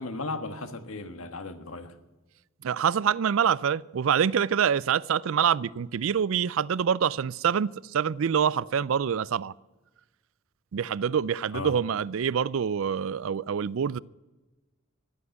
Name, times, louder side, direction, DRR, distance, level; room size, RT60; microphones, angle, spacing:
voice 1, 0.0-2.0 11.5-11.8, left 3 dB, 80° left, 1.5 m, -36 dB
voice 2, 2.6-9.5 10.7-14.0, right 7 dB, 70° right, 0.4 m, -26 dB
15.0 x 8.6 x 9.2 m
head